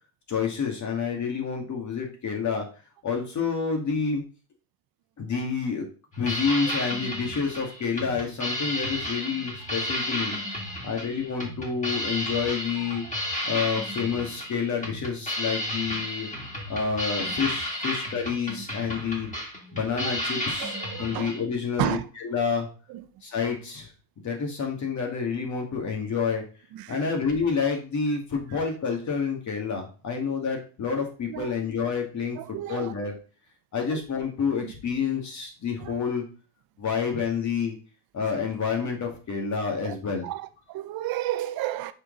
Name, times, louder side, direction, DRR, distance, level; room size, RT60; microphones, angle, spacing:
voice 1, 0.3-2.7 3.0-4.2 5.2-5.9 6.2-10.3 10.8-13.0 13.4-16.3 16.7-19.3 19.7-22.7 23.2-23.9 24.2-26.4 26.9-33.1 33.7-36.2 36.8-37.8 38.1-40.3, left 5 dB, 35° left, 2.2 m, -28 dB
sound 1, 6.1-21.4, left 1 dB, 15° left, 2.7 m, -32 dB
voice 2, 20.6-21.3 21.8-22.0 22.9-23.0 26.7-27.0 31.3-31.5 32.4-32.9 33.9-34.0 34.6-34.7 35.8-36.0 39.8-40.0 40.2-41.9, right 14 dB, 45° right, 0.7 m, -32 dB
6.5 x 4.6 x 4.0 m
supercardioid pair, 115°, 49 cm